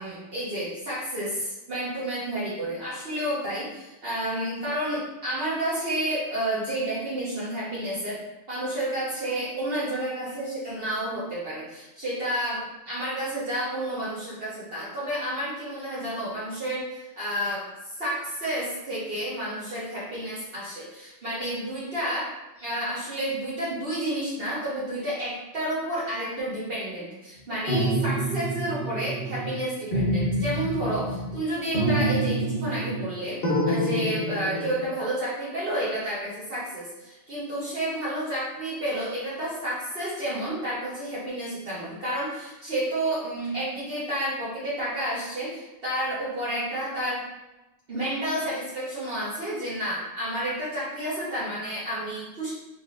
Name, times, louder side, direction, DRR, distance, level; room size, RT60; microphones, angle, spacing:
voice 1, 0.0-8.2 8.5-17.7 18.0-22.3 22.6-47.2 47.9-52.5, right 1 dB, 55° right, -9 dB, 1.2 m, -30 dB
sound 1, 27.7-29.6 29.9-31.4 31.7-33.1 33.4-34.8, right 1 dB, 55° left, 1.1 m, -27 dB
4.1 x 3.4 x 2.4 m, 1.0 s
omnidirectional pair, 1.2 m